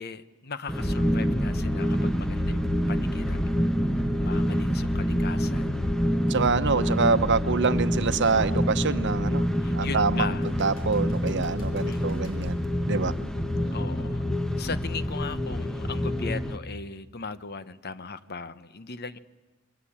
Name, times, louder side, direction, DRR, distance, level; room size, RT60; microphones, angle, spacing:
voice 1, 0.0-3.4 3.9-5.8 6.5-6.7 9.6-10.5 11.9-12.3 13.7-14.2 14.6-19.2, left 4 dB, 50° left, 13 dB, 1.0 m, -38 dB
sound 1, 0.7-16.6, equal, 5° left, 1.0 m, -27 dB
sound 2, 6.3-6.6 7.1-7.2 10.4-12.6 16.3-16.4, left 1 dB, 75° left, 7.0 m, -52 dB
voice 2, 6.3-9.5 9.7-10.3 10.6-12.6 12.9-13.1, right 4 dB, 60° right, 11 dB, 1.0 m, -25 dB
27.5 x 22.5 x 8.7 m, 1.2 s
head